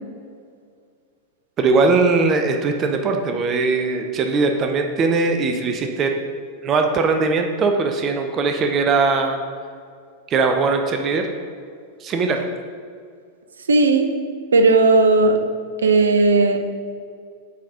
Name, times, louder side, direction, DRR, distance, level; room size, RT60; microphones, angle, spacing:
voice 1, 1.6-6.1 6.6-9.4 10.3-11.3 12.0-12.4, right 4 dB, 30° right, 5 dB, 0.6 m, -20 dB
voice 2, 13.7-14.1 14.5-15.4 15.8-16.6, right 3 dB, 70° right, 6 dB, 0.6 m, -15 dB
8.4 x 4.1 x 5.0 m, 2.2 s
figure-of-eight pair, 90°, 0 cm